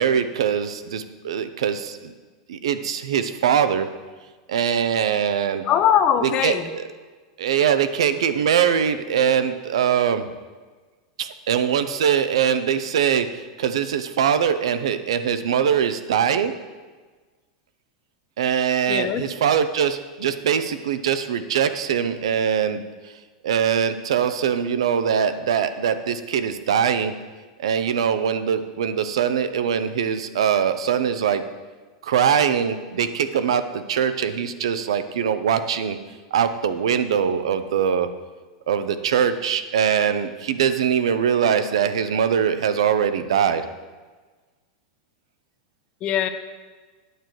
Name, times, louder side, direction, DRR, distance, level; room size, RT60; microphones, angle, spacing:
voice 1, 0.0-2.1 2.5-3.9 4.5-5.6 6.2-6.8 7.4-10.3 11.2-16.5 18.4-23.1 23.4-27.1 27.6-31.4 32.0-36.0 36.3-38.1 38.7-43.6, right 8 dB, 90° right, 11 dB, 0.7 m, -22 dB
voice 2, 5.6-6.7 18.9-19.2 46.0-46.3, left 9 dB, 40° left, 10 dB, 0.7 m, -21 dB
9.3 x 7.6 x 4.6 m, 1.3 s
supercardioid pair, 130°, 3 cm